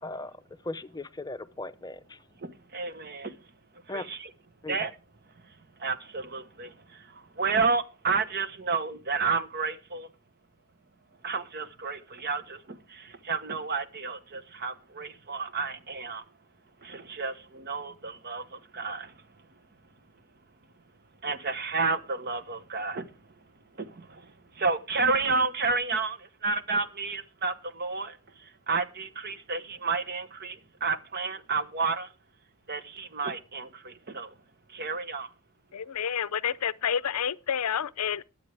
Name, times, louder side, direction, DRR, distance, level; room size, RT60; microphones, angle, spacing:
voice 1, 0.0-2.2 3.9-4.2 4.6-4.9, left 2 dB, 20° left, 0.7 m, -38 dB
voice 2, 2.4-3.3 3.9-4.3 4.7-4.9 5.8-10.1 11.2-16.2 16.8-19.1 21.2-23.1 23.8-32.1 32.7-34.3 34.7-35.3, right 4 dB, 45° right, 1.1 m, -31 dB
voice 3, 35.7-38.2, left 8 dB, 90° left, 0.6 m, -29 dB
21.5 x 7.9 x 3.4 m
head